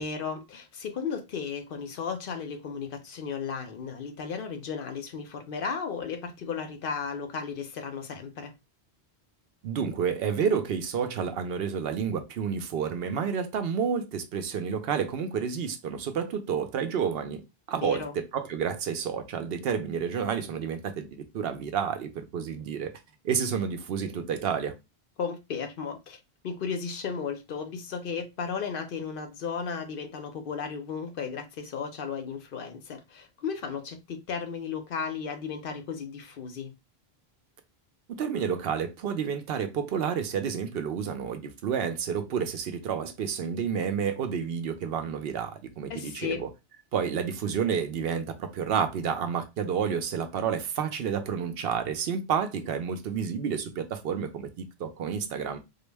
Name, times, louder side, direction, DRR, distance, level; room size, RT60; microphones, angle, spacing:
voice 1, 0.0-8.5 17.8-18.1 25.2-36.7 45.9-46.4, left 6 dB, 65° left, 0.7 m, -35 dB
voice 2, 9.6-17.4 17.7-22.9 23.2-24.7 38.2-46.5 46.9-55.6, right 7 dB, 70° right, 0.8 m, -30 dB
3.7 x 2.0 x 3.3 m
omnidirectional pair, 1.1 m